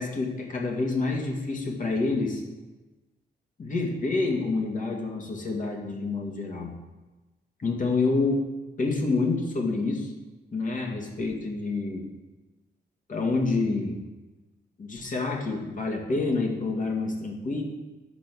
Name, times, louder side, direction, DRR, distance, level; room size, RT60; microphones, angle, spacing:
voice 1, 0.0-2.4 3.6-6.7 7.6-8.4 8.8-10.1 10.5-12.1 13.1-13.9 14.8-17.6, left 3 dB, 50° left, 0 dB, 2.2 m, -28 dB
9.3 x 5.4 x 6.2 m, 1.1 s
cardioid pair, 110°, 18 cm